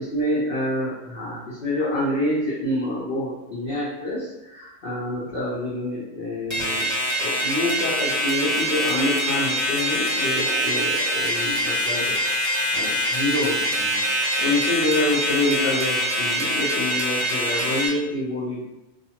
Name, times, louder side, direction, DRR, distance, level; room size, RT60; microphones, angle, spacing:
voice 1, 0.0-6.9 7.2-12.2 12.7-14.0 14.4-18.6, left 1 dB, 55° left, -8 dB, 0.6 m, -27 dB
sound 1, 6.5-17.9, equal, 15° right, 1.0 m, -24 dB
2.6 x 2.4 x 2.8 m, 0.93 s
omnidirectional pair, 1.7 m